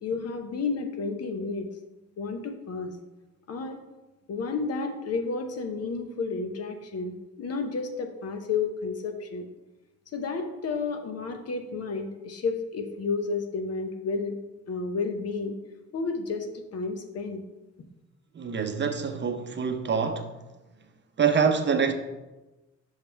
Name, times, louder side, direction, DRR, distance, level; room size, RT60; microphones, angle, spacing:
voice 1, 0.0-1.7 2.2-2.9 3.5-3.8 4.3-9.5 10.1-14.4 14.7-15.6 15.9-16.5 16.7-17.4, left 4 dB, 55° left, 0.9 m, -31 dB
voice 2, 18.3-20.3 21.2-21.9, right 6 dB, 35° right, 0.7 m, -25 dB
5.6 x 5.2 x 4.5 m
cardioid pair, 90°, 30 cm